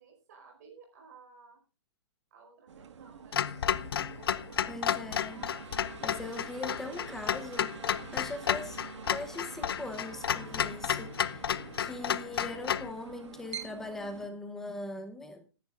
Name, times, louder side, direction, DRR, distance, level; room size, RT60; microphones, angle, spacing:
voice 1, 0.0-1.6 2.3-3.4 4.0-4.9, right 5 dB, 35° right, 2 dB, 4.8 m, -56 dB
sound 1, 2.7-14.3, right 7 dB, 80° right, 1.7 m, -47 dB
Clock, 3.3-12.9, left 9 dB, 55° left, 0.6 m, -32 dB
voice 2, 4.7-5.4 6.0-7.7 8.1-8.8 9.1-11.4 11.8-15.5, left 2 dB, 5° left, 7 dB, 0.8 m, -40 dB
21.0 x 11.0 x 2.4 m, 0.33 s
hypercardioid pair, 180°, 15 cm